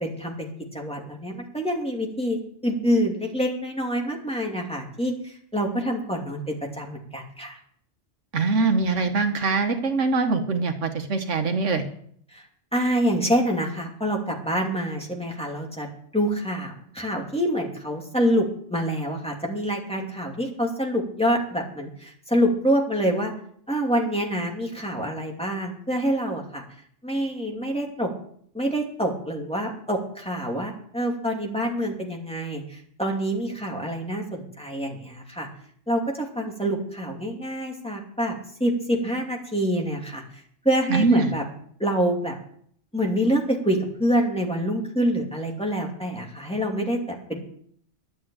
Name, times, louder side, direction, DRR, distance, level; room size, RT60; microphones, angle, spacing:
voice 1, 0.0-7.6 12.3-12.4 12.7-23.3 23.7-26.6 27.0-28.1 28.5-35.5 35.9-38.3 38.6-40.2 40.6-41.4 41.8-42.4 42.9-47.4, equal, 5° left, 0 dB, 2.6 m, -26 dB
voice 2, 8.3-11.8 40.9-41.3, right 4 dB, 85° right, 6 dB, 1.6 m, -23 dB
11.5 x 7.9 x 8.8 m, 0.63 s
omnidirectional pair, 1.2 m